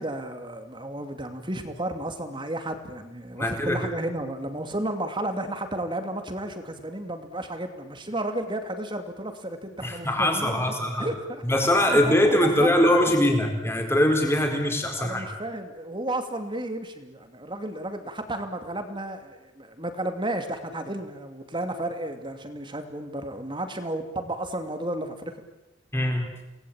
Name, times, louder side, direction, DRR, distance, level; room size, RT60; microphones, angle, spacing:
voice 1, 0.0-13.2 15.0-25.4, right 1 dB, 25° right, 7 dB, 2.6 m, -33 dB
voice 2, 3.4-3.8 9.8-11.1 11.4-15.2 25.9-26.3, left 1 dB, 15° left, 3 dB, 4.4 m, -22 dB
28.5 x 20.0 x 8.9 m, 1.0 s
head